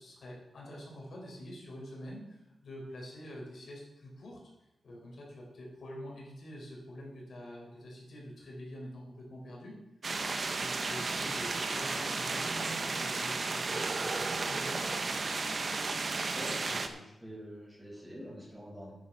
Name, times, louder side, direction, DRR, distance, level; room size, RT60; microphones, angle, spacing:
voice 1, 0.0-4.4 4.8-9.7 10.6-15.0, equal, 70° left, -3 dB, 4.3 m, -46 dB
sound 1, 10.0-16.9, right 3 dB, 45° right, 1.0 m, -33 dB
voice 2, 16.3-18.9, equal, 10° right, -3 dB, 5.2 m, -45 dB
9.8 x 9.8 x 5.6 m, 0.93 s
wide cardioid pair, 105°, 0 cm